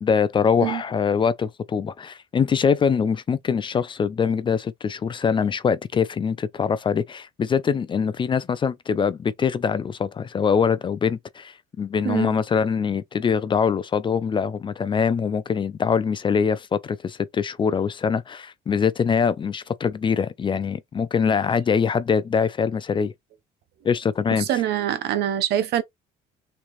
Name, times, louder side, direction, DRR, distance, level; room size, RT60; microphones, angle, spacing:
voice 1, 0.0-23.1 23.8-24.5, left 6 dB, 30° left, 0.4 m, -23 dB
voice 2, 24.4-25.8, right 11 dB, 75° right, 0.9 m, -24 dB
3.5 x 3.2 x 3.1 m
cardioid pair, 110°, 17 cm